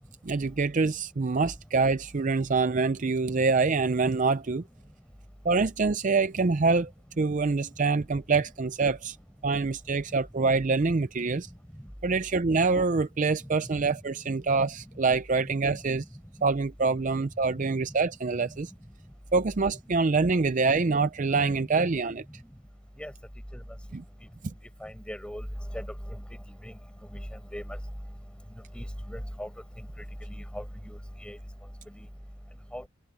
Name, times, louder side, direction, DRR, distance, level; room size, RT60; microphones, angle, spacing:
voice 1, 0.2-4.6 5.4-6.9 7.2-9.2 9.4-11.5 12.0-16.0 16.4-18.7 19.3-22.2 23.9-24.0, right 4 dB, 35° right, 0.5 m, -25 dB
voice 2, 17.5-17.8 21.5-21.6 23.0-23.1 23.5-23.6 24.8-25.5 25.7-26.2 26.6-26.7 27.1-27.8 28.7-29.5 29.8-31.4 31.9-32.1 32.7-32.9, equal, 5° left, 4.9 m, -39 dB
head